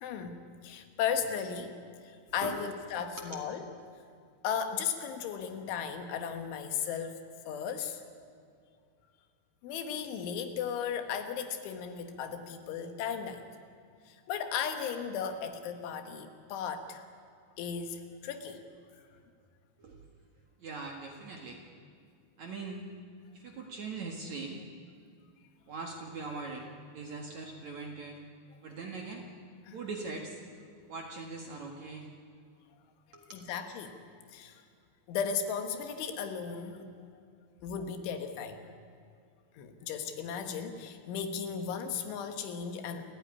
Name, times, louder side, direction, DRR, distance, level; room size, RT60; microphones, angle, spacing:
voice 1, 0.0-1.8 2.0-3.7 4.4-7.2 7.5-8.0 9.6-13.4 14.1-17.0 17.6-18.6 29.7-29.8 33.3-34.0 34.3-34.6 35.1-36.9 37.6-38.6 39.6-43.1, left 7 dB, 80° left, 7 dB, 4.0 m, -36 dB
voice 2, 20.6-21.6 22.4-22.8 23.3-24.6 25.7-28.2 28.6-29.3 29.7-30.4 30.9-32.2 33.1-33.3, right 3 dB, 55° right, 2 dB, 2.3 m, -41 dB
28.5 x 14.5 x 9.9 m, 2.3 s
omnidirectional pair, 5.4 m